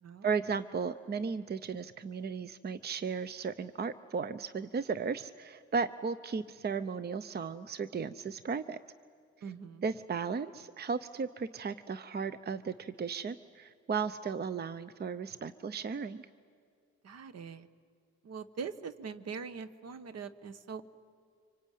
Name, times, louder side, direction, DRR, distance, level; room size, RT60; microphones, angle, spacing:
voice 1, 0.2-8.8 9.8-16.3, right 5 dB, 35° right, 14 dB, 0.7 m, -35 dB
voice 2, 9.4-9.8 17.0-17.7 18.2-20.8, right 5 dB, 55° right, 14 dB, 1.3 m, -42 dB
25.5 x 24.5 x 9.2 m, 2.2 s
cardioid pair, 90°, 30 cm